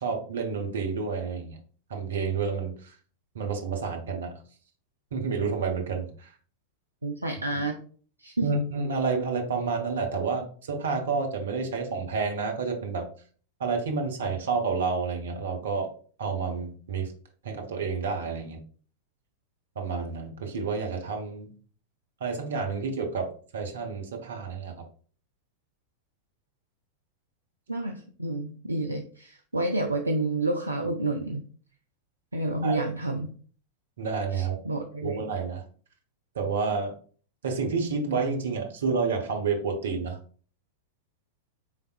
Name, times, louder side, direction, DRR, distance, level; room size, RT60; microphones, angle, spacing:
voice 1, 0.0-1.6 1.9-2.9 3.3-4.3 5.1-6.3 8.4-13.1 13.6-15.9 16.2-17.1 17.4-18.6 19.8-21.5 22.2-23.3 23.5-24.8 32.6-32.8 34.0-34.6 35.0-35.6 36.3-36.9 37.4-40.2, right 4 dB, 65° right, 3 dB, 0.8 m, -29 dB
voice 2, 7.0-7.8 8.2-8.5 27.7-31.4 32.3-33.3 34.3-35.2, right 2 dB, 80° right, 4 dB, 0.3 m, -29 dB
4.1 x 3.4 x 2.3 m, 0.43 s
figure-of-eight pair, 90°, 0 cm